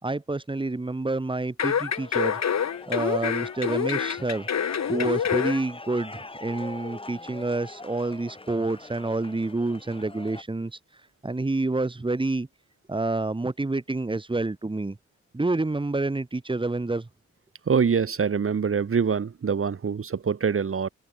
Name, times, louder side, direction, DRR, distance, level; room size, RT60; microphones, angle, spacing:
voice 1, 0.0-2.4 2.9-4.5 4.9-10.8 11.2-12.5 12.9-15.0 15.3-17.1, right 2 dB, 15° right, 5.4 m, -28 dB
sound 1, 1.6-5.6 6.0-6.1, left 8 dB, 65° left, 5.4 m, -26 dB
sound 2, 1.9-10.4, left 2 dB, 20° left, 4.7 m, -43 dB
voice 2, 17.7-20.9, right 6 dB, 45° right, 5.1 m, -24 dB
wide cardioid pair, 155°, 29 cm